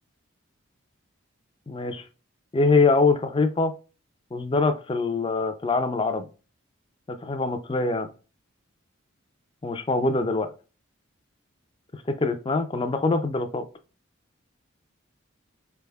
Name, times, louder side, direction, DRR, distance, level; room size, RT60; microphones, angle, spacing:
voice 1, 1.7-2.0 2.5-3.7 4.3-6.3 7.1-8.1 9.6-10.5 11.9-13.6, left 3 dB, 25° left, 8 dB, 0.4 m, -24 dB
4.6 x 3.4 x 2.2 m, 0.34 s
head